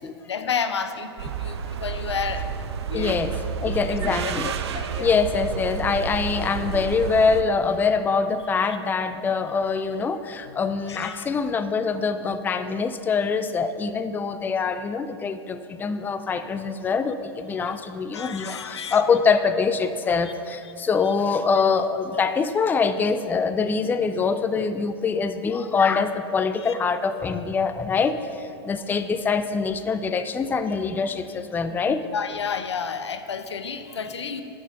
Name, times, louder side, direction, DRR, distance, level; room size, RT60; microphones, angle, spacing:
voice 1, 0.0-2.5 2.9-3.2 3.6-4.0 4.2-5.2 8.7-8.8 10.5-10.6 10.9-11.3 17.6-17.7 18.1-19.0 20.2-20.3 20.6-20.7 21.1-21.2 23.8-24.0 26.6-26.7 32.0-34.4, left 6 dB, 90° left, 10 dB, 0.6 m, -31 dB
sound 1, 1.2-7.4, right 7 dB, 75° right, 0.6 m, -30 dB
voice 2, 2.9-3.3 3.6-4.5 5.0-32.0, left 5 dB, 15° left, 11 dB, 0.4 m, -24 dB
12.0 x 4.9 x 5.5 m, 2.5 s
hypercardioid pair, 105°, 14 cm